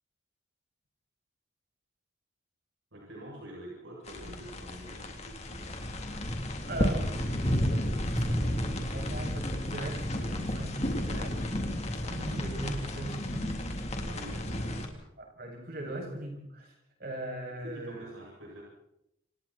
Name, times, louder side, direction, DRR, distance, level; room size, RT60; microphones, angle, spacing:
voice 1, 2.9-5.7 14.0-15.1 15.8-16.0 17.6-18.6, right 1 dB, 80° right, -3 dB, 7.9 m, -46 dB
sound 1, 4.1-14.9, equal, 35° left, 3.6 m, -32 dB
voice 2, 6.6-7.2 8.1-11.7 12.0-13.7 15.2-16.7 17.0-18.1, right 1 dB, 50° right, 1 dB, 7.8 m, -39 dB
29.0 x 27.5 x 4.5 m, 0.82 s
head